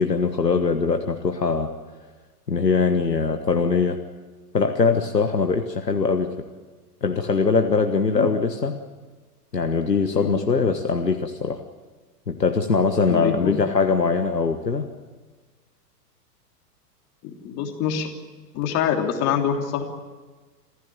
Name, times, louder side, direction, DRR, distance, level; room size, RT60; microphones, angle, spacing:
voice 1, 0.0-1.7 2.5-4.0 4.5-6.3 7.0-8.8 9.5-11.6 12.3-14.9, left 4 dB, 85° left, 6 dB, 1.5 m, -22 dB
voice 2, 13.1-13.6 17.2-18.1 18.5-19.8, left 8 dB, 30° left, 3 dB, 3.2 m, -25 dB
27.5 x 15.0 x 9.2 m, 1.3 s
figure-of-eight pair, 105°, 48 cm